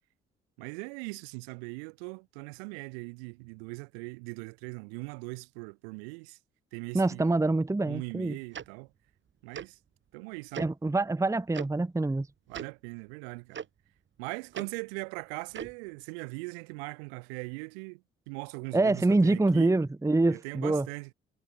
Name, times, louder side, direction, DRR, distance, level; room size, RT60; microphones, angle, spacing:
voice 1, 0.6-6.4 6.7-7.4 7.9-8.9 9.4-9.8 10.1-10.7 12.5-13.7 14.2-19.8 20.3-21.1, right 34 dB, 75° right, 3.4 m, -40 dB
voice 2, 6.9-8.4 10.6-12.3 18.7-20.9, right 2 dB, 10° right, 0.9 m, -25 dB
Tick-tock, 8.5-8.7 9.5-9.7 10.5-10.7 11.5-11.7 12.5-12.7 13.5-13.6 14.5-14.7 15.5-15.7, right 8 dB, 40° right, 1.1 m, -38 dB
figure-of-eight pair, 45°, 30 cm